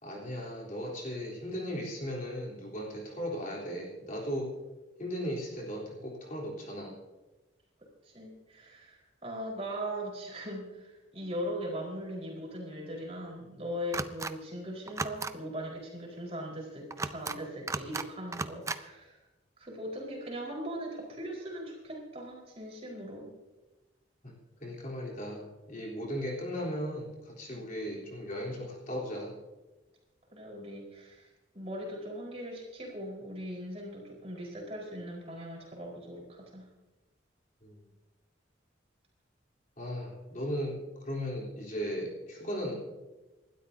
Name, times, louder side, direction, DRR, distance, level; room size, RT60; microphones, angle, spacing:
voice 1, 0.0-4.6 5.0-7.0 24.2-24.3 24.6-29.4 37.6-37.9 39.8-42.7, equal, 40° left, -3 dB, 3.6 m, -37 dB
voice 2, 8.0-19.2 19.6-23.3 27.5-27.7 30.3-36.7, equal, 30° right, -2 dB, 4.6 m, -40 dB
sound 1, 13.9-14.3 14.9-15.3 16.9-17.4 17.7-18.1 18.3-18.8, right 3 dB, 15° right, 0.4 m, -34 dB
28.5 x 12.5 x 2.8 m, 1.1 s
head